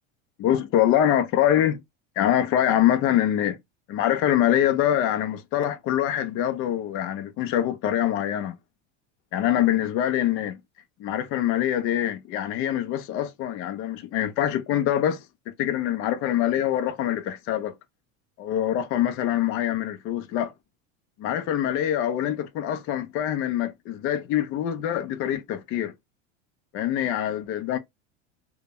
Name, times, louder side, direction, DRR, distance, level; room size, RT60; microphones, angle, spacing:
voice 1, 0.4-1.8 2.2-3.6 3.9-8.6 9.3-10.6 11.0-17.7 18.4-20.5 21.2-25.9 26.7-27.8, left 11 dB, 35° left, 0.4 m, -24 dB
2.1 x 2.0 x 3.3 m
supercardioid pair, 120°, 39 cm